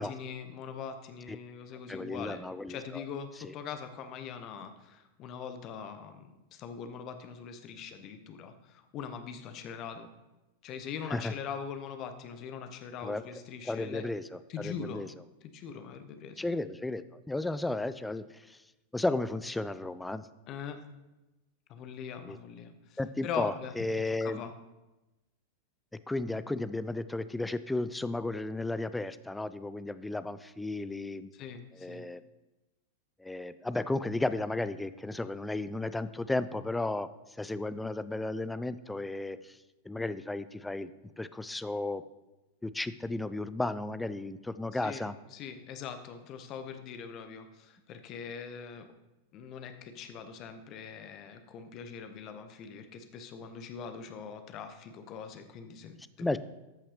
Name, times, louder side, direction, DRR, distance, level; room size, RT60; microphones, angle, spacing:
voice 1, 0.0-2.4 2.7-10.1 10.6-14.0 14.5-15.0 15.5-16.4 20.5-20.8 21.7-23.7 24.2-24.5 31.3-32.1 44.7-45.0 45.3-48.9 49.3-56.4, left 6 dB, 35° left, 8 dB, 0.9 m, -42 dB
voice 2, 1.9-3.0 3.4-3.5 11.1-11.3 13.0-13.2 13.7-15.1 16.4-18.6 18.9-20.3 22.3-22.4 23.0-24.4 26.1-31.3 31.7-32.2 33.2-37.1 37.4-39.6 39.8-40.9 41.2-42.0 42.6-45.1 56.2-56.4, left 2 dB, 5° left, 13 dB, 0.4 m, -34 dB
13.5 x 5.8 x 3.2 m, 1.0 s
figure-of-eight pair, 90°, 0 cm